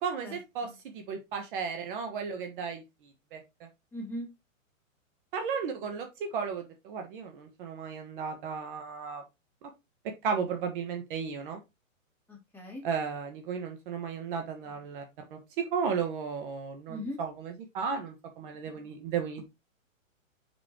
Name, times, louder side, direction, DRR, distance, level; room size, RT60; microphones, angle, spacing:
voice 1, 0.0-2.8 3.3-3.7 5.3-9.2 9.6-9.7 10.2-11.6 12.8-15.0 15.3-19.4, right 6 dB, 40° right, 5 dB, 1.3 m, -34 dB
voice 2, 3.9-4.3 12.3-12.8 16.9-17.2, left 1 dB, 5° left, -2 dB, 2.6 m, -39 dB
5.5 x 5.3 x 4.4 m, 0.23 s
hypercardioid pair, 145°, 41 cm